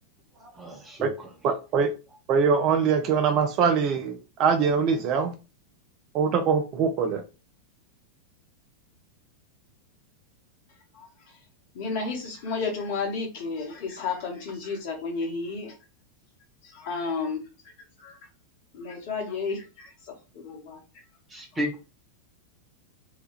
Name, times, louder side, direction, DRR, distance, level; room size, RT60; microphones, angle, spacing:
voice 1, 0.4-1.1 21.3-21.8, equal, 15° right, 0.9 m, -33 dB
voice 2, 1.4-1.9 2.3-5.3 6.1-7.2, right 6 dB, 40° right, 0.4 m, -23 dB
voice 3, 10.9-11.4 11.7-15.8 16.6-17.4 18.0-18.2 18.7-19.9 20.3-21.0, left 4 dB, 50° left, 1.1 m, -32 dB
2.8 x 2.2 x 3.2 m
figure-of-eight pair, 90°, 0 cm